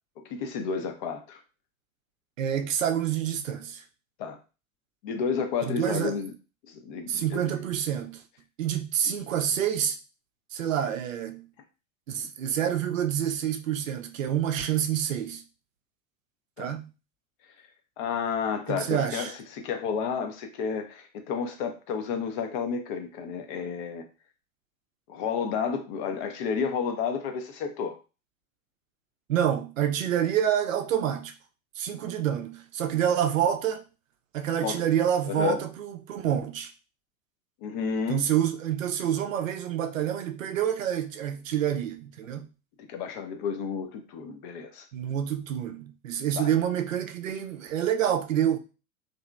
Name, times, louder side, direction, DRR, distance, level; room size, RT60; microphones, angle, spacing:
voice 1, 0.2-1.4 4.2-4.4 5.0-6.3 6.7-7.5 16.6-16.7 18.0-24.0 25.1-28.0 32.0-32.1 34.6-34.9 35.2-35.6 37.6-38.2 42.8-44.8 46.4-46.5, left 6 dB, 35° left, 0.5 m, -31 dB
voice 2, 2.4-3.8 5.7-6.2 7.1-8.2 8.6-10.0 10.5-11.5 12.1-15.4 16.6-16.9 18.7-19.3 29.3-31.3 31.8-33.8 34.3-36.7 38.1-42.5 44.9-48.6, right 10 dB, 70° right, 0.5 m, -27 dB
2.7 x 2.6 x 2.3 m
figure-of-eight pair, 85°, 42 cm